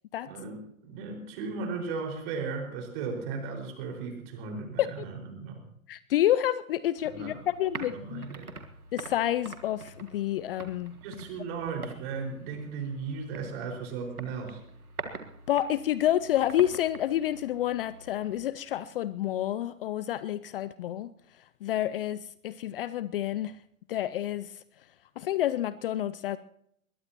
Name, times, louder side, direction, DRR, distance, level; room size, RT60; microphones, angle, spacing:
voice 1, 0.3-5.6 7.0-7.4 7.8-8.5 11.0-14.6, right 5 dB, 45° right, 2 dB, 5.2 m, -36 dB
voice 2, 5.9-8.3 8.9-11.0 15.5-21.1 21.6-23.6 23.9-24.5 25.2-26.4, left 12 dB, 45° left, 17 dB, 0.5 m, -29 dB
sound 1, 7.0-18.4, right 3 dB, 90° right, 1.7 m, -45 dB
21.5 x 21.0 x 3.0 m, 0.71 s
figure-of-eight pair, 110°, 42 cm